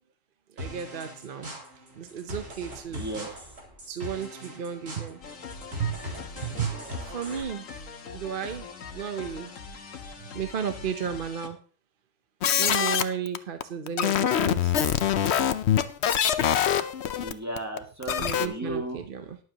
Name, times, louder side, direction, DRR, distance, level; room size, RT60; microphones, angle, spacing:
voice 1, 0.5-1.5 1.9-3.1 3.9-5.2 5.8-6.0 6.4-7.8 8.1-8.7 8.9-9.5 10.2-11.6 12.5-14.7 18.2-19.4, right 7 dB, 50° right, 8 dB, 0.8 m, -33 dB
sound 1, 0.6-7.4, equal, 80° right, 3.7 m, -41 dB
voice 2, 2.9-3.5 16.1-16.2 17.2-19.0, right 1 dB, 10° right, 2 dB, 2.0 m, -35 dB
sound 2, 5.2-11.5, left 5 dB, 85° left, 1.6 m, -42 dB
sound 3, 12.4-18.5, left 9 dB, 60° left, 0.9 m, -24 dB
20.5 x 7.6 x 2.9 m, 0.39 s
omnidirectional pair, 1.3 m